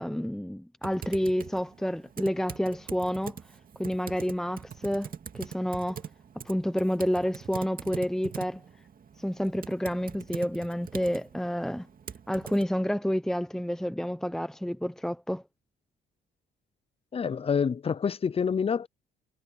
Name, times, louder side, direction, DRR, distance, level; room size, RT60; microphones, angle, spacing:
voice 1, 0.0-3.4 3.8-6.0 6.4-8.6 9.2-11.9 12.3-15.4, equal, ahead, 0.8 m, -29 dB
Typing, 0.8-12.6, right 7 dB, 45° right, 2.3 m, -43 dB
voice 2, 17.1-18.9, left 6 dB, 30° left, 0.5 m, -27 dB
cardioid pair, 90°, 20 cm